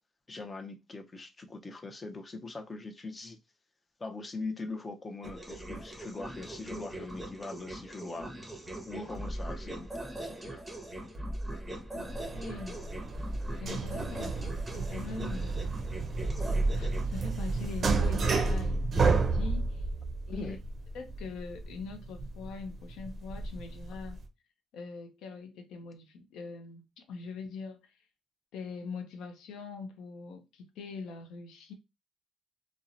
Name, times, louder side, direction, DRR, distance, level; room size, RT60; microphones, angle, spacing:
voice 1, 0.3-3.4 4.0-8.3 8.9-9.9 10.2-10.6 17.6-17.7 20.3-20.6, left 3 dB, 30° left, 0.5 m, -41 dB
sound 1, 5.2-17.0, right 1 dB, 10° right, 0.7 m, -40 dB
voice 2, 11.9-12.8 13.6-15.8 16.7-19.9 20.3-20.6 20.9-24.2 24.7-28.1 28.5-31.7, left 4 dB, 85° left, 0.5 m, -43 dB
sound 2, 12.1-24.2, right 3 dB, 45° right, 0.5 m, -31 dB
2.8 x 2.0 x 2.4 m
cardioid pair, 90°, 0 cm